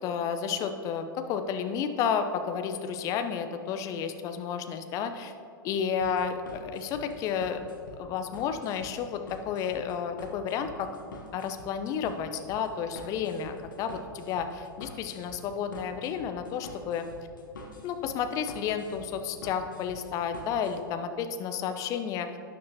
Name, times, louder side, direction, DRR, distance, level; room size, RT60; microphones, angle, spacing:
voice 1, 0.0-5.3 5.6-7.6 7.9-10.9 11.3-17.1 17.8-22.4, left 7 dB, 30° left, 8 dB, 0.7 m, -31 dB
sound 1, 6.0-20.8, left 2 dB, 65° left, 1.4 m, -46 dB
12.0 x 9.4 x 2.9 m, 2.5 s
figure-of-eight pair, 100°, 11 cm